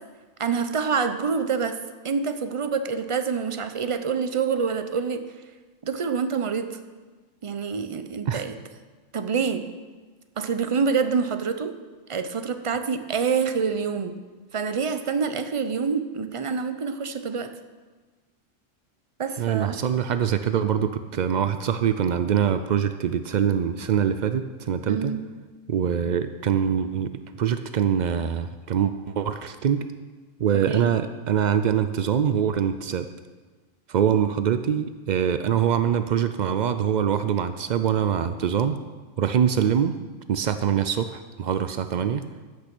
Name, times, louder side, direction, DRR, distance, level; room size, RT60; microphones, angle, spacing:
voice 1, 0.4-1.8 2.0-5.2 5.8-6.7 7.4-8.5 9.1-9.6 10.4-11.7 12.1-14.1 14.5-17.5 19.2-19.8 24.9-25.2 30.7-30.9, right 5 dB, 35° right, 9 dB, 0.5 m, -26 dB
voice 2, 19.4-25.1 25.7-29.9 30.4-33.1 33.9-38.8 39.2-39.9 40.3-42.2, right 8 dB, 85° right, 10 dB, 0.4 m, -24 dB
14.0 x 6.4 x 6.1 m, 1.4 s
omnidirectional pair, 1.3 m